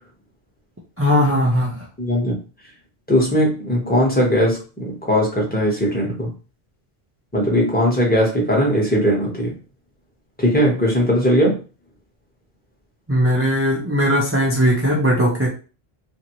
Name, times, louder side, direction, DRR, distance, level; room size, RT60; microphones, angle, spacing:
voice 1, 1.0-1.8 13.1-15.5, equal, 20° right, -3 dB, 0.3 m, -18 dB
voice 2, 2.0-2.3 3.1-6.3 7.3-9.6 10.4-11.6, equal, 10° left, -4 dB, 0.9 m, -19 dB
2.7 x 2.6 x 2.9 m, 0.35 s
omnidirectional pair, 1.1 m